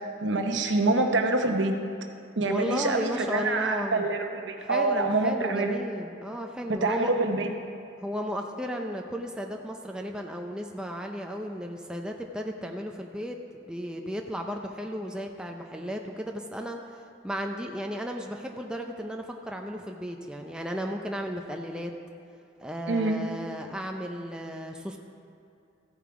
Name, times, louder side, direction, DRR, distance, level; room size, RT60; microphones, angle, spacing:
voice 1, 0.2-1.8 2.4-5.8 6.7-7.5 22.9-23.2, right 2 dB, 70° right, 4 dB, 0.9 m, -26 dB
voice 2, 2.5-4.1 4.6-7.1 8.0-17.0 17.2-21.9 22.6-25.0, equal, 5° right, 2 dB, 0.5 m, -34 dB
14.5 x 7.4 x 4.8 m, 2.6 s
head